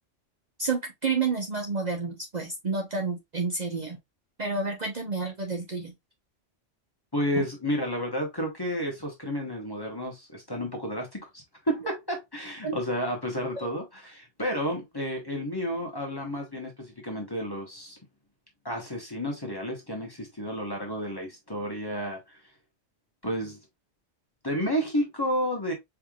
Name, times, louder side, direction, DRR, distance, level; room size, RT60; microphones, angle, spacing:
voice 1, 0.6-4.0 4.4-5.9 7.4-7.5 12.6-12.7 13.5-13.7, right 4 dB, 40° right, 0.9 m, -30 dB
voice 2, 7.1-18.0 18.6-22.2 23.2-23.6 24.4-25.7, equal, 20° left, 1.1 m, -31 dB
4.7 x 3.4 x 2.3 m
omnidirectional pair, 1.2 m